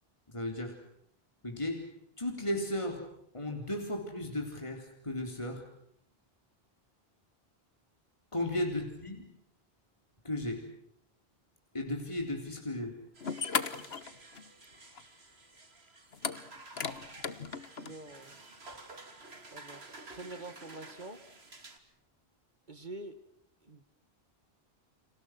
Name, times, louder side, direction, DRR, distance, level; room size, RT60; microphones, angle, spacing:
voice 1, 0.3-0.8 1.4-1.9 2.2-3.1 3.3-5.7 8.3-9.3 10.2-10.7 11.7-13.0, left 1 dB, 30° left, 3 dB, 4.0 m, -35 dB
sound 1, 12.8-12.9 13.2-14.6 15.0-15.1 16.1-17.9, left 6 dB, 75° left, 1.5 m, -36 dB
sound 2, 13.1-21.8, right 2 dB, 85° right, 3.1 m, -52 dB
voice 2, 17.8-18.3 19.5-21.2 22.7-23.2 23.6-23.8, right 2 dB, 50° right, 10 dB, 2.2 m, -46 dB
30.0 x 27.0 x 6.1 m, 0.73 s
omnidirectional pair, 1.0 m